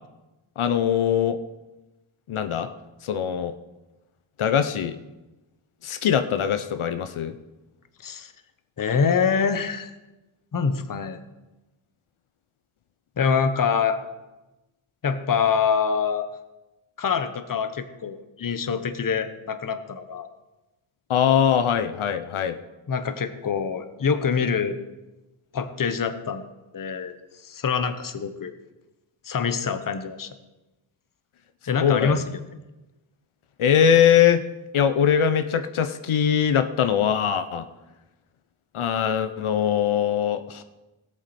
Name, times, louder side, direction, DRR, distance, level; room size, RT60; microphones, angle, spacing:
voice 1, 0.6-1.4 2.3-2.7 3.0-3.5 4.4-5.0 5.8-7.3 21.1-22.6 31.8-32.2 33.6-34.4 34.7-37.6 38.7-40.6, left 8 dB, 80° left, 10 dB, 0.8 m, -21 dB
voice 2, 8.8-9.9 10.5-11.2 13.2-14.0 15.0-16.3 17.0-20.3 22.9-24.8 25.5-26.4 26.7-27.1 27.4-28.5 29.2-30.3 31.7-32.2, left 6 dB, 40° left, 10 dB, 0.8 m, -25 dB
17.5 x 8.5 x 4.2 m, 1.0 s
wide cardioid pair, 155°, 49 cm